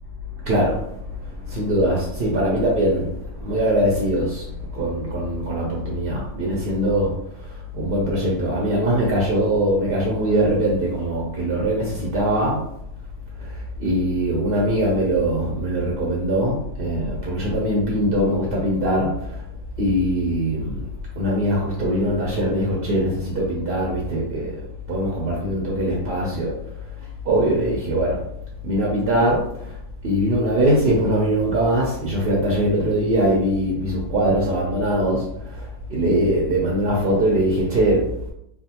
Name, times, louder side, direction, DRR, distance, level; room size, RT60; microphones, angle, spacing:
voice 1, 0.4-0.8 1.2-7.2 7.7-12.7 13.4-19.4 19.8-20.9 21.2-26.6 27.2-28.2 28.6-29.7 30.0-38.1, right 1 dB, 60° right, -3 dB, 0.6 m, -22 dB
3.4 x 2.1 x 2.8 m, 0.77 s
omnidirectional pair, 1.6 m